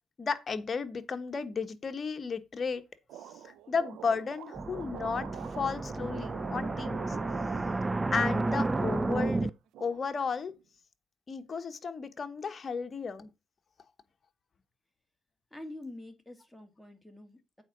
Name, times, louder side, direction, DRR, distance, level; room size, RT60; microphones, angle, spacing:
voice 1, 0.2-2.8 3.4-7.2 8.1-9.5 9.8-10.5 11.3-13.3, left 5 dB, 40° left, 1.2 m, -34 dB
sound 1, 3.1-8.4 8.7-9.4 9.7-10.6, right 10 dB, 85° right, 0.6 m, -46 dB
sound 2, 4.6-9.5, right 2 dB, 20° right, 0.4 m, -31 dB
voice 2, 15.5-17.6, left 1 dB, ahead, 2.4 m, -46 dB
8.4 x 4.7 x 6.1 m
cardioid pair, 90°, 0 cm